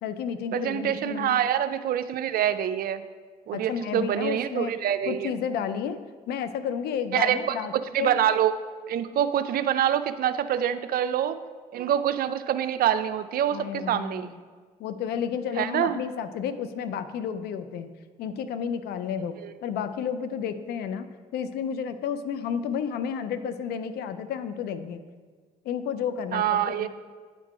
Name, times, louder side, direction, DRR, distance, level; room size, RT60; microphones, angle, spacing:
voice 1, 0.0-1.4 3.5-4.8 5.1-6.0 6.3-7.7 8.0-8.2 13.5-14.4 14.8-17.9 18.2-19.4 19.6-25.0 25.6-26.9, left 7 dB, 80° left, 11 dB, 0.5 m, -31 dB
voice 2, 0.5-3.0 3.5-5.3 7.1-7.4 7.9-8.5 8.9-11.4 11.7-14.3 15.6-16.0 19.4-19.5 26.3-26.9, right 10 dB, 65° right, 11 dB, 0.4 m, -25 dB
9.5 x 3.7 x 4.8 m, 1.5 s
supercardioid pair, 60°, 16 cm